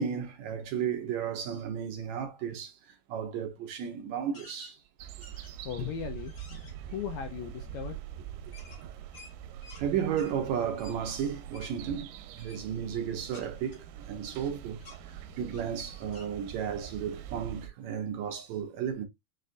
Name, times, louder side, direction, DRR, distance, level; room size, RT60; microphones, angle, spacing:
voice 1, 0.0-4.8 8.5-8.6 8.8-8.9 9.8-19.1, right 8 dB, 75° right, 1.7 m, -34 dB
sound 1, 4.3-4.7 5.2-5.7 6.2-6.7 8.5-9.8 10.2-10.3 10.8-11.0 11.5-11.7 12.3-12.6 13.3-14.5 14.8-15.0 15.5-15.7 16.1-16.3, left 3 dB, 55° left, 0.9 m, -52 dB
sound 2, 5.0-17.7, right 10 dB, 90° right, 2.2 m, -44 dB
voice 2, 5.6-6.6 6.9-8.0, left 8 dB, 80° left, 1.7 m, -37 dB
6.4 x 2.4 x 2.5 m
omnidirectional pair, 3.8 m